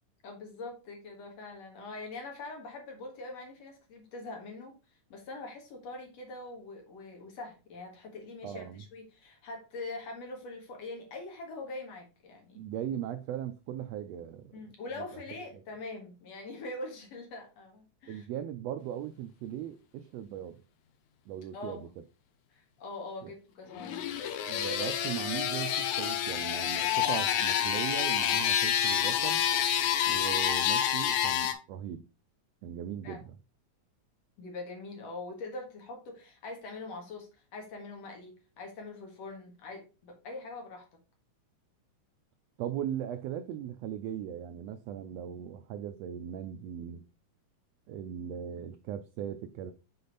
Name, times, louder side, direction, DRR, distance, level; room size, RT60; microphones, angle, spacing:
voice 1, 0.2-4.8 5.1-12.6 14.5-18.3 21.5-21.8 22.5-24.0 33.0-33.2 34.4-40.8, left 2 dB, 60° left, 2.6 m, -43 dB
voice 2, 8.4-8.8 12.5-14.6 18.1-20.6 21.3-21.9 23.2-23.3 24.5-29.4 30.0-32.1 32.6-33.3 42.6-47.0 47.9-49.7, right 10 dB, 90° right, 1.4 m, -38 dB
sound 1, 23.7-31.5, left 9 dB, 80° left, 2.1 m, -28 dB
6.9 x 4.2 x 4.0 m
omnidirectional pair, 3.5 m